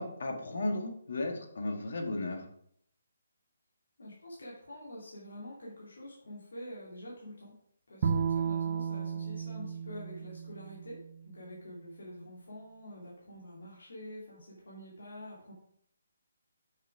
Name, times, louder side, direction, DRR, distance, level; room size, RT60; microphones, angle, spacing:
voice 1, 0.0-2.5, left 2 dB, 65° left, 3 dB, 1.8 m, -35 dB
voice 2, 4.0-7.5 7.9-15.5, equal, 85° left, -5 dB, 2.9 m, -47 dB
Bowed string instrument, 8.0-11.3, right 7 dB, 35° right, 0.7 m, -33 dB
7.0 x 6.0 x 4.8 m, 0.69 s
hypercardioid pair, 165°, 0 cm